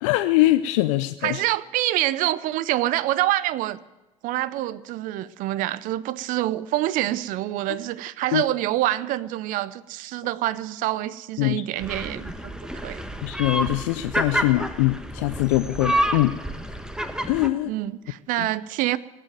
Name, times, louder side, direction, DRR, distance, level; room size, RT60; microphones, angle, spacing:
voice 1, 0.0-1.4 8.3-8.4 11.4-11.6 13.2-16.4 17.3-17.7 18.4-18.5, left 17 dB, 65° left, 0.5 m, -22 dB
voice 2, 1.2-3.8 4.2-13.0 17.6-19.0, right 15 dB, 55° right, 0.6 m, -26 dB
sound 1, 11.8-17.5, right 1 dB, 5° right, 1.2 m, -29 dB
18.0 x 7.5 x 9.2 m
hypercardioid pair, 65°, 17 cm